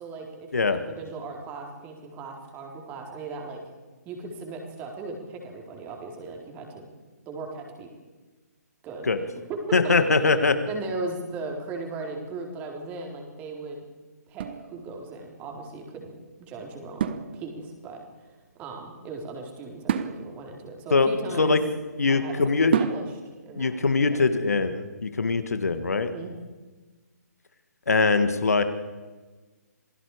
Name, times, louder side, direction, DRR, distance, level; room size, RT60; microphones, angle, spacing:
voice 1, 0.0-3.6 4.1-6.9 7.3-7.9 8.8-9.1 9.5-9.6 9.8-9.9 10.6-13.9 14.3-16.1 16.4-18.0 18.3-21.6 22.1-23.1 23.4-23.8 24.1-24.3 26.0-26.3, right 3 dB, 20° right, 1 dB, 4.0 m, -38 dB
voice 2, 9.7-10.6 20.9-21.1 21.4-21.6 22.0-22.9 23.6-26.1 27.9-28.6, left 4 dB, 65° left, 10 dB, 1.9 m, -22 dB
sound 1, 14.3-15.4 17.0-17.9 19.9-21.9 22.7-23.5, right 8 dB, 35° right, 1.2 m, -31 dB
27.5 x 19.0 x 4.9 m, 1.3 s
figure-of-eight pair, 135°, 9 cm